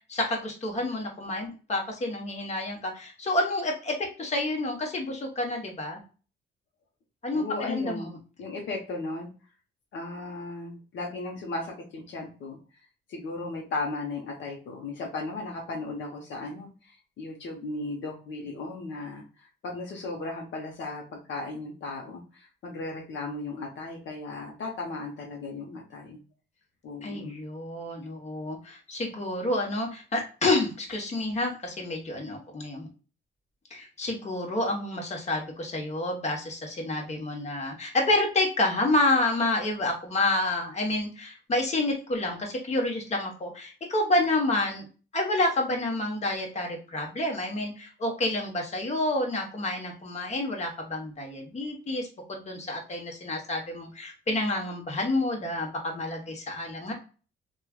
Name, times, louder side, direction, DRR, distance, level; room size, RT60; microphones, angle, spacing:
voice 1, 0.1-6.0 7.2-8.2 27.0-32.9 33.7-44.9 45.1-56.9, left 2 dB, 35° left, 1 dB, 1.0 m, -29 dB
voice 2, 7.3-8.1 8.4-9.3 9.9-12.6 13.1-26.2 26.8-27.3, left 3 dB, 70° left, 0 dB, 0.9 m, -36 dB
3.1 x 2.4 x 2.3 m, 0.36 s
cardioid pair, 90°, 20 cm